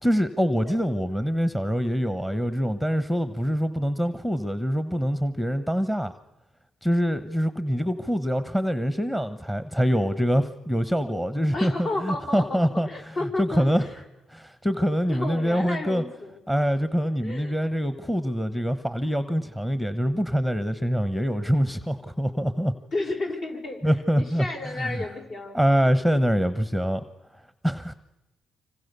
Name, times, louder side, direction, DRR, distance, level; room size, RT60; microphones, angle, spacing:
voice 1, 0.0-6.1 6.8-13.8 14.3-16.0 16.5-22.7 23.8-25.0 25.5-27.0 27.6-27.9, equal, 5° left, 12 dB, 1.1 m, -25 dB
voice 2, 11.5-13.7 15.1-16.4 17.2-17.7 22.9-25.6, left 2 dB, 55° left, 2 dB, 5.7 m, -32 dB
26.0 x 25.5 x 6.9 m, 0.98 s
cardioid pair, 90°, 0 cm